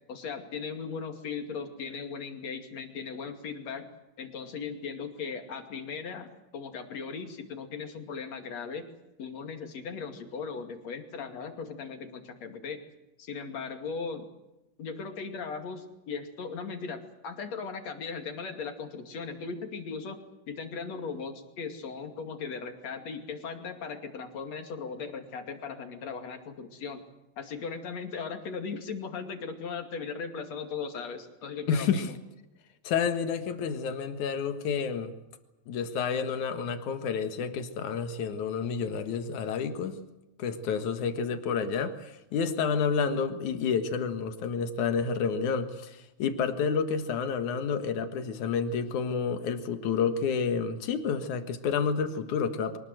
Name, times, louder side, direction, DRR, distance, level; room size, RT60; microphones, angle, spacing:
voice 1, 0.1-3.9 4.2-8.9 9.2-12.8 13.2-14.3 14.8-20.2 20.5-27.0 27.4-32.2, left 5 dB, 65° left, 6 dB, 3.6 m, -38 dB
voice 2, 31.7-32.1 32.8-35.1 35.7-40.0 40.4-52.8, left 6 dB, 85° left, 8 dB, 3.1 m, -29 dB
24.0 x 20.0 x 7.9 m, 0.95 s
omnidirectional pair, 3.4 m